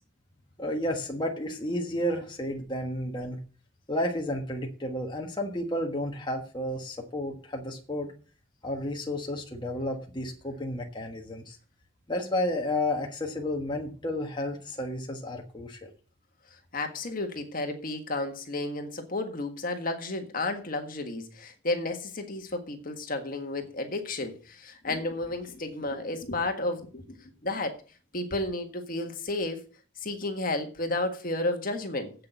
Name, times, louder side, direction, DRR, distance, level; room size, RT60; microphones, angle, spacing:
voice 1, 0.6-3.4 3.9-8.1 8.6-11.6 12.1-15.9, left 1 dB, 20° left, 1.4 m, -32 dB
voice 2, 16.7-27.2 27.4-27.8 28.1-29.6 30.0-32.1, left 2 dB, 45° left, 1.6 m, -32 dB
8.2 x 6.7 x 8.0 m
head